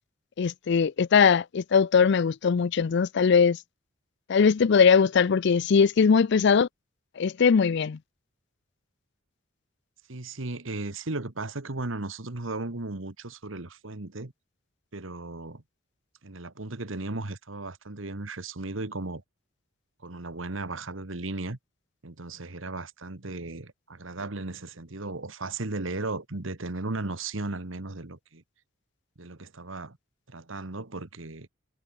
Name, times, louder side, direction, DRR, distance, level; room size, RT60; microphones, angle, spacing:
voice 1, 0.4-3.6 4.3-6.7 7.2-8.0, left 6 dB, 60° left, 0.4 m, -21 dB
voice 2, 10.1-14.3 14.9-15.6 16.2-19.2 20.0-21.6 22.0-28.4 29.2-30.0 30.3-31.5, right 2 dB, 70° right, 1.6 m, -36 dB
head